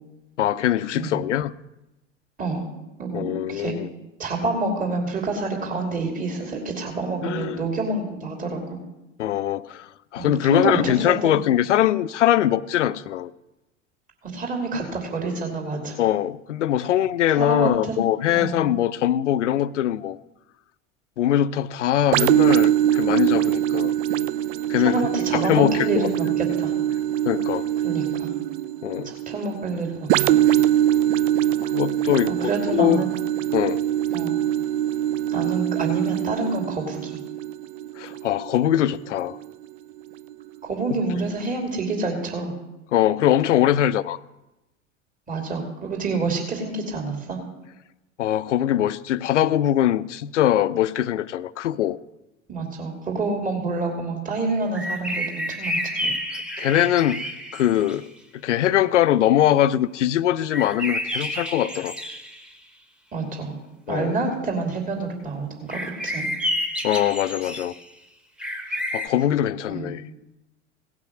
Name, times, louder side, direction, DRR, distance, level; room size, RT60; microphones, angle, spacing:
voice 1, 0.4-1.5 3.1-3.9 7.2-7.6 9.2-13.3 16.0-20.2 21.2-23.9 24.7-25.0 25.3-26.1 27.2-27.7 28.8-29.1 31.7-33.0 33.5-33.8 38.0-39.4 40.9-41.0 42.9-44.2 48.2-52.0 56.0-56.1 56.6-58.1 58.3-61.9 63.9-64.2 66.8-67.7 68.9-70.0, left 11 dB, 70° left, 17 dB, 0.6 m, -22 dB
voice 2, 3.0-3.7 4.2-8.8 10.2-11.4 14.3-16.0 17.3-18.0 18.3-18.6 24.8-26.7 27.8-28.3 29.0-30.5 32.3-33.1 34.1-34.4 35.3-37.2 40.6-42.5 45.3-47.4 52.5-56.1 63.1-63.6 63.9-66.3 69.7-69.9, right 3 dB, 20° right, 1 dB, 2.8 m, -28 dB
sound 1, 22.1-39.6 40.2-40.3, right 12 dB, 45° right, 0.5 m, -23 dB
sound 2, 54.7-58.1 60.5-62.5 65.7-67.9 68.4-69.1, equal, ahead, 1.3 m, -30 dB
17.5 x 6.0 x 6.2 m, 1.0 s
figure-of-eight pair, 75°, 38 cm